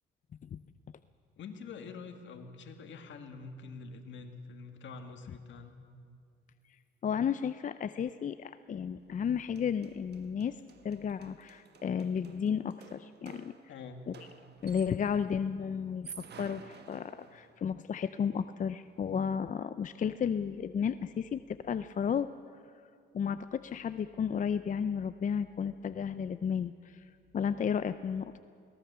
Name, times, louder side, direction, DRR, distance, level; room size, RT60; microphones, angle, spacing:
voice 1, 1.4-5.8 13.7-14.0, left 4 dB, 70° left, 6 dB, 2.0 m, -46 dB
voice 2, 7.0-10.6 10.8-13.5 14.1-14.2 14.6-22.3 23.1-28.4, left 7 dB, 40° left, 12 dB, 0.5 m, -33 dB
sound 1, 9.2-9.3 9.6-15.2 15.9-17.7, right 6 dB, 55° right, 1.4 m, -53 dB
22.0 x 18.0 x 6.9 m, 2.3 s
cardioid pair, 90°, 20 cm